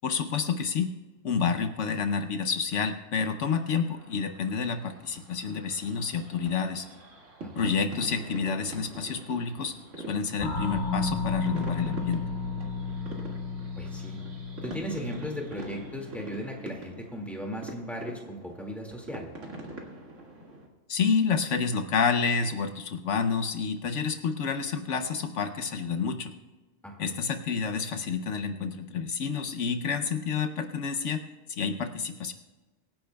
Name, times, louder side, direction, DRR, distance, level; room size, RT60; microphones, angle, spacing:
voice 1, 0.0-0.9 1.2-6.9 7.6-12.2 20.9-26.3 27.0-31.2 31.5-32.3, left 5 dB, 75° left, 8 dB, 1.1 m, -29 dB
sound 1, 3.2-20.7, right 2 dB, 75° right, 2.4 m, -44 dB
sound 2, 10.4-16.7, left 3 dB, 40° left, 1.4 m, -34 dB
voice 2, 13.8-14.2 14.6-19.3 26.8-27.1, equal, ahead, 0 dB, 2.0 m, -37 dB
24.5 x 10.5 x 2.3 m, 1.2 s
omnidirectional pair, 1.3 m